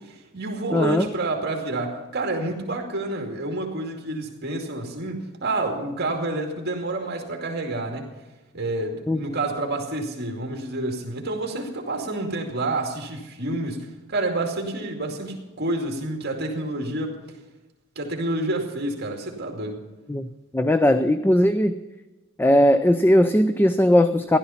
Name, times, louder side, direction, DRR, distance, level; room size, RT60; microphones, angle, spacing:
voice 1, 0.0-8.1 8.5-17.2 18.0-19.8, right 2 dB, 55° right, 1 dB, 2.4 m, -29 dB
voice 2, 0.7-1.1 9.1-9.2 20.1-20.3 20.5-21.8 22.4-24.4, left 1 dB, 10° left, 10 dB, 0.5 m, -18 dB
15.5 x 12.0 x 5.7 m, 1.1 s
head